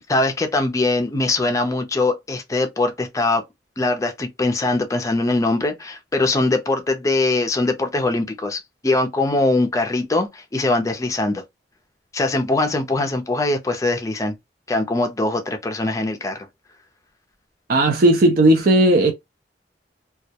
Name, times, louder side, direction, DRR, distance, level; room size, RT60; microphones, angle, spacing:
voice 1, 0.1-3.4 3.8-11.4 12.1-14.3 14.7-16.5, left 2 dB, 20° left, 0.4 m, -22 dB
voice 2, 17.7-19.1, right 1 dB, 55° right, 0.5 m, -15 dB
2.2 x 2.0 x 2.7 m
head